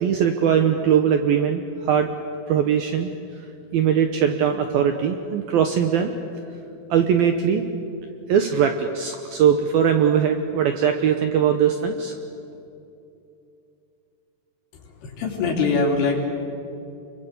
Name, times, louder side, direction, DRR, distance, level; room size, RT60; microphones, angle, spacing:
voice 1, 0.0-2.1 2.5-3.1 3.7-6.1 6.9-7.6 8.3-12.1, right 8 dB, 80° right, 6 dB, 2.2 m, -20 dB
voice 2, 14.7-16.2, left 4 dB, 75° left, 0 dB, 6.1 m, -23 dB
29.0 x 22.5 x 8.4 m, 2.7 s
omnidirectional pair, 5.7 m